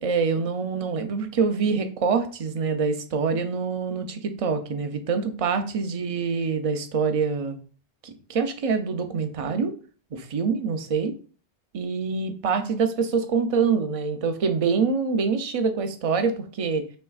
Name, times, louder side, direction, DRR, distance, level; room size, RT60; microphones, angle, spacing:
voice 1, 0.0-7.6 8.0-9.7 10.1-11.1 11.7-16.8, right 5 dB, 45° right, 7 dB, 0.5 m, -25 dB
5.3 x 3.3 x 2.3 m, 0.41 s
omnidirectional pair, 1.1 m